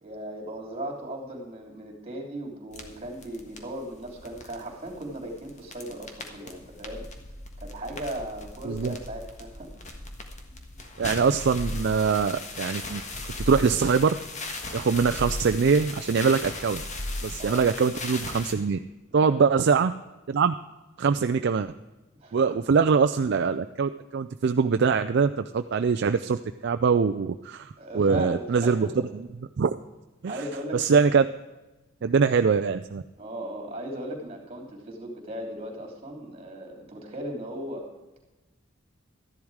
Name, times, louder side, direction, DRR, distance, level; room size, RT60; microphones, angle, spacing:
voice 1, 0.0-7.1 7.6-9.7 17.4-17.7 19.1-19.5 22.2-22.5 27.8-28.9 30.3-31.0 32.0-32.2 33.2-37.9, right 1 dB, 30° right, 0 dB, 3.2 m, -37 dB
sound 1, 2.7-18.5, left 2 dB, 35° left, 1.5 m, -38 dB
voice 2, 8.6-9.0 11.0-13.0 13.4-14.2 14.7-16.8 17.2-18.8 19.1-19.9 20.3-20.5 21.0-21.7 22.3-28.9 29.1-29.3 29.6-29.7 30.2-30.4 30.7-31.3 32.0-33.0, right 5 dB, 55° right, 8 dB, 0.4 m, -23 dB
13.5 x 10.5 x 4.8 m, 1.1 s
head